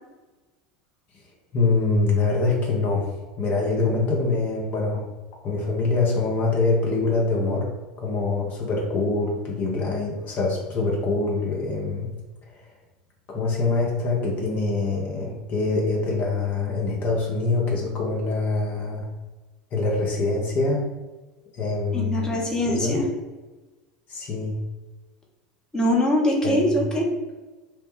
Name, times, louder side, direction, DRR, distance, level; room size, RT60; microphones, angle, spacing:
voice 1, 1.5-3.1 3.4-5.1 5.4-7.7 8.0-12.1 13.3-19.0 19.7-20.9 21.5-22.4 22.7-23.0 24.1-24.6 26.4-26.7, left 3 dB, 40° left, -2 dB, 0.7 m, -24 dB
voice 2, 21.9-23.1 25.7-27.1, left 1 dB, 15° left, -2 dB, 0.8 m, -22 dB
3.0 x 2.1 x 3.1 m, 1.2 s
figure-of-eight pair, 80°, 4 cm